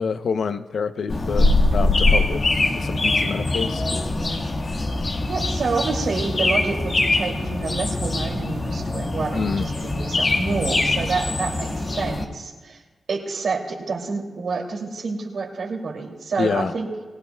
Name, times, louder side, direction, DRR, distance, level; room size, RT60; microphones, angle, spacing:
voice 1, 0.0-3.8 9.3-9.7 16.4-16.7, left 5 dB, 70° left, 10 dB, 0.7 m, -27 dB
sound 1, 1.1-12.3, left 2 dB, 45° left, 1.6 m, -23 dB
voice 2, 5.3-12.8 13.1-17.1, right 4 dB, 75° right, 1 dB, 2.6 m, -28 dB
28.5 x 17.0 x 2.3 m, 1.3 s
cardioid pair, 55°, 0 cm